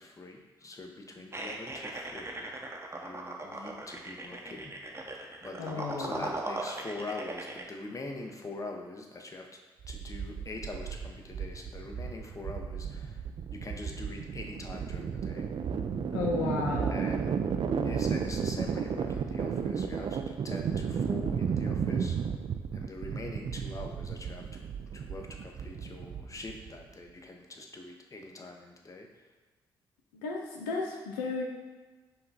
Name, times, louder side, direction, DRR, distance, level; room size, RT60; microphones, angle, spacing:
voice 1, 0.0-2.5 2.9-4.7 5.4-9.5 9.9-13.2 13.5-15.5 16.9-17.3 17.8-22.2 22.7-24.6 24.9-29.1, left 2 dB, 30° left, 2 dB, 0.8 m, -43 dB
sound 1, 1.3-7.6, right 2 dB, 25° right, 0.8 m, -39 dB
voice 2, 5.6-6.3 16.1-17.1 30.1-31.4, left 4 dB, 90° left, -1 dB, 0.5 m, -33 dB
sound 2, 9.8-26.8, right 6 dB, 50° right, 0.4 m, -33 dB
5.6 x 2.3 x 4.0 m, 1.3 s
hypercardioid pair, 45°, 11 cm